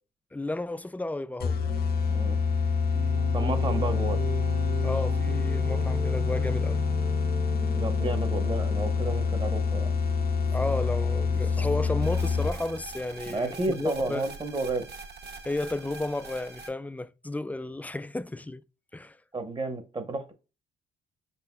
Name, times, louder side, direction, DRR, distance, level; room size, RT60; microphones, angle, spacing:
voice 1, 0.3-1.6 4.8-6.8 10.5-14.2 15.4-18.6 18.9-19.2, left 2 dB, 10° left, 0.3 m, -33 dB
sound 1, 1.4-12.8, left 5 dB, 50° left, 0.6 m, -26 dB
sound 2, 2.9-12.1, right 2 dB, 90° right, 1.1 m, -39 dB
voice 2, 3.3-4.2 7.8-9.9 13.3-14.9 19.3-20.3, right 2 dB, 25° right, 0.9 m, -31 dB
sound 3, 12.0-16.7, right 4 dB, 55° right, 1.3 m, -43 dB
5.2 x 4.1 x 2.2 m
cardioid pair, 90°, 20 cm